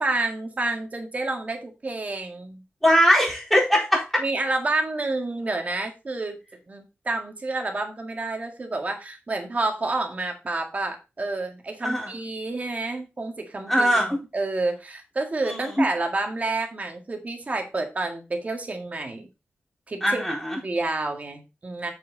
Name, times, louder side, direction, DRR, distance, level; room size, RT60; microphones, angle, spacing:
voice 1, 0.0-2.6 4.2-6.4 6.7-19.3 19.9-20.3 20.6-21.9, right 2 dB, 40° right, 3 dB, 2.0 m, -29 dB
voice 2, 2.8-4.0 11.8-12.1 13.7-14.2 15.5-15.9 20.0-20.6, equal, 5° left, -2 dB, 4.1 m, -21 dB
7.5 x 6.6 x 3.9 m, 0.28 s
wide cardioid pair, 130°, 4 cm